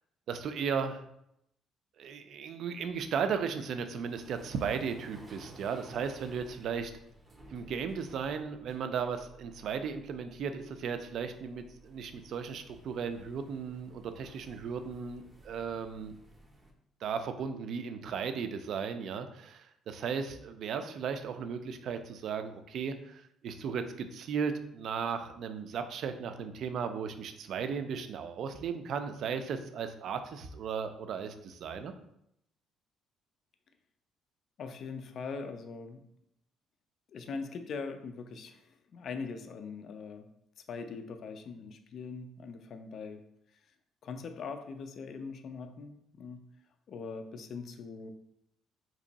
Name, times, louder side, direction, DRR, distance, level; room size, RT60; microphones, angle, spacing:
voice 1, 0.3-1.0 2.0-6.9 7.5-16.1 17.0-31.9, right 6 dB, 60° right, 8 dB, 0.3 m, -36 dB
sound 1, 2.7-16.7, right 1 dB, 15° right, 0.6 m, -56 dB
voice 2, 34.6-36.0 37.1-40.3 40.7-43.2 44.0-46.5 46.9-48.1, left 5 dB, 55° left, 7 dB, 0.3 m, -41 dB
2.9 x 2.6 x 3.9 m, 0.78 s
cardioid pair, 125°, 0 cm